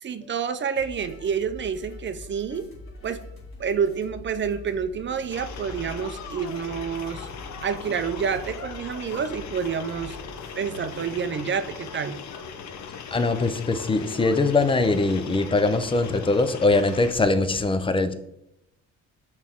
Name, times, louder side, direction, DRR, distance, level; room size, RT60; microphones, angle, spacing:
voice 1, 0.0-2.7 3.0-3.2 3.6-7.3 7.6-10.2 10.5-12.2, right 6 dB, 40° right, 11 dB, 0.6 m, -28 dB
sound 1, 0.8-11.3, left 1 dB, 45° left, 1.9 m, -44 dB
sound 2, 5.3-17.1, left 6 dB, 65° left, 0.8 m, -39 dB
voice 2, 13.1-18.1, left 3 dB, 15° left, 10 dB, 0.6 m, -22 dB
6.1 x 4.4 x 3.6 m, 0.80 s
cardioid pair, 90°, 30 cm